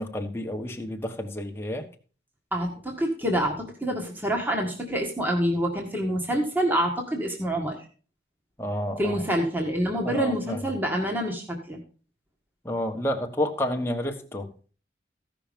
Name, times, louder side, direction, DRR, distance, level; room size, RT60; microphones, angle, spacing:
voice 1, 0.0-1.9 8.6-9.2 10.0-10.6 12.6-14.7, left 1 dB, 15° left, 2 dB, 1.4 m, -30 dB
voice 2, 2.5-7.8 9.0-11.8, equal, 10° right, 1 dB, 1.8 m, -27 dB
15.5 x 6.0 x 5.2 m, 0.38 s
head